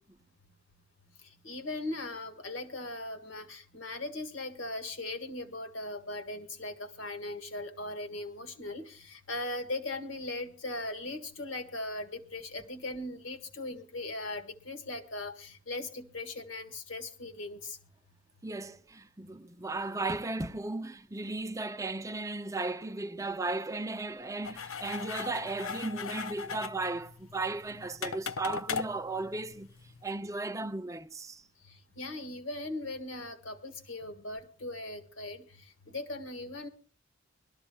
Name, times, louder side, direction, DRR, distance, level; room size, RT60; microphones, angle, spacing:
voice 1, 1.4-17.8 31.6-35.5 35.9-36.7, left 2 dB, 65° left, 1.7 m, -39 dB
voice 2, 18.4-29.7 30.0-31.4, right 2 dB, 15° right, 0.5 m, -35 dB
sound 1, 24.4-30.0, left 6 dB, 80° left, 0.6 m, -39 dB
23.5 x 13.0 x 2.3 m
head